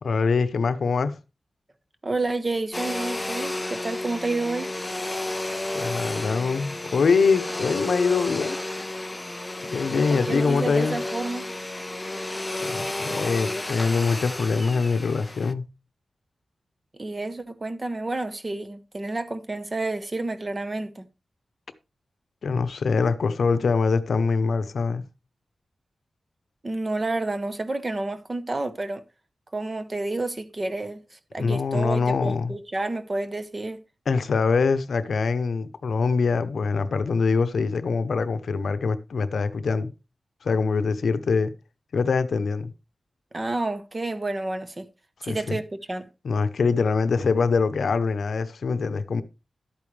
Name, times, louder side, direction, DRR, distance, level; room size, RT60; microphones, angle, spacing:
voice 1, 0.0-1.2 5.7-8.6 9.6-11.0 12.6-15.6 22.4-25.0 31.4-32.5 34.1-39.9 40.4-41.5 41.9-42.7 45.2-45.6 46.2-49.2, left 4 dB, 70° left, 0.8 m, -24 dB
voice 2, 2.0-4.7 9.9-11.5 16.9-21.1 26.6-29.0 29.5-33.8 43.3-44.9 45.2-46.1, right 2 dB, 25° right, 1.0 m, -30 dB
Domestic sounds home sounds, 2.7-15.5, left 2 dB, 15° left, 0.4 m, -31 dB
12.0 x 8.7 x 3.3 m
wide cardioid pair, 160°, 0 cm